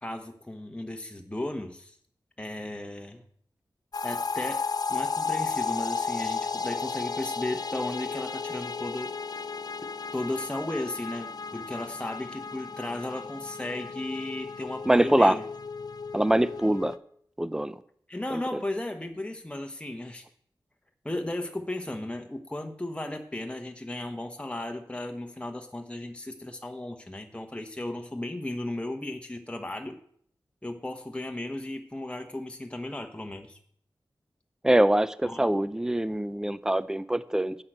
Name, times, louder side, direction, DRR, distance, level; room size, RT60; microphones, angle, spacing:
voice 1, 0.0-2.0 2.4-3.2 4.0-4.6 4.9-9.1 10.1-15.4 18.1-20.2 21.0-30.0 30.6-33.6 35.2-35.4, left 1 dB, 15° left, 5 dB, 1.0 m, -35 dB
sound 1, 3.9-17.0, left 4 dB, 55° left, 0.5 m, -34 dB
voice 2, 14.9-15.4 16.1-17.0 17.4-17.7 18.3-18.4 34.6-37.6, right 1 dB, 5° right, 16 dB, 0.5 m, -23 dB
8.9 x 5.7 x 7.9 m, 0.63 s
cardioid pair, 45°, 8 cm